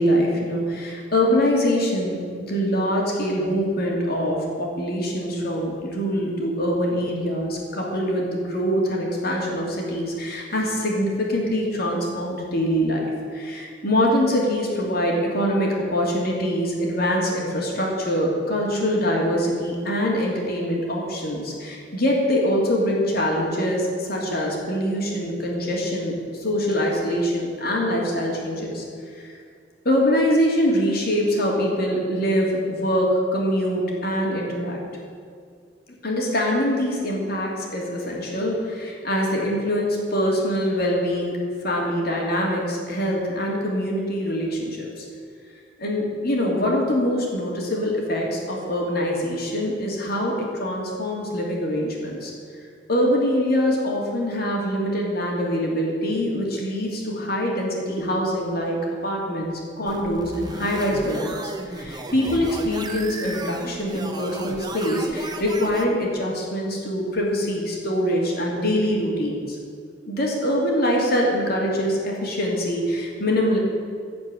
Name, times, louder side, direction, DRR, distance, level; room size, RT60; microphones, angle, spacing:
voice 1, 0.0-2.2 2.5-13.0 13.3-28.8 29.1-29.3 29.8-34.8 36.0-41.4 41.6-45.0 45.8-52.3 52.9-59.5 59.8-69.6 70.1-73.6, equal, 55° left, -2 dB, 2.8 m, -24 dB
sound 1, 59.8-65.8, right 2 dB, 20° right, 0.9 m, -34 dB
15.5 x 5.3 x 9.0 m, 2.2 s
head